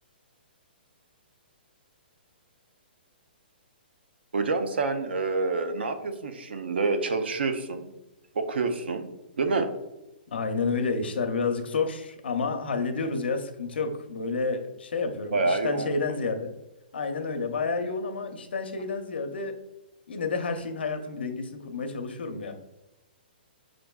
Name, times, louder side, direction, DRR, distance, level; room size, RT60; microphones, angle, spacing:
voice 1, 4.3-7.9 8.3-9.1 9.4-9.7 15.3-15.9, right 3 dB, 85° right, 7 dB, 0.5 m, -27 dB
voice 2, 10.3-16.5 16.9-19.5 20.1-22.5, left 4 dB, 85° left, 6 dB, 0.6 m, -30 dB
5.8 x 2.5 x 2.2 m, 0.98 s
hypercardioid pair, 175°, 6 cm